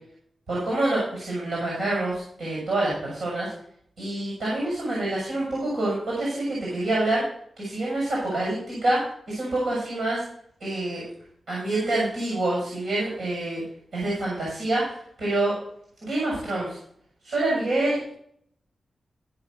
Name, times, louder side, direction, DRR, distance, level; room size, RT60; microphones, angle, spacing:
voice 1, 0.5-3.5 4.0-7.2 7.6-10.2 10.6-11.0 11.5-13.6 13.9-15.6 16.0-16.8 17.2-18.1, right 2 dB, 85° right, -5 dB, 6.7 m, -26 dB
15.0 x 6.0 x 6.6 m, 0.66 s
wide cardioid pair, 105°, 0 cm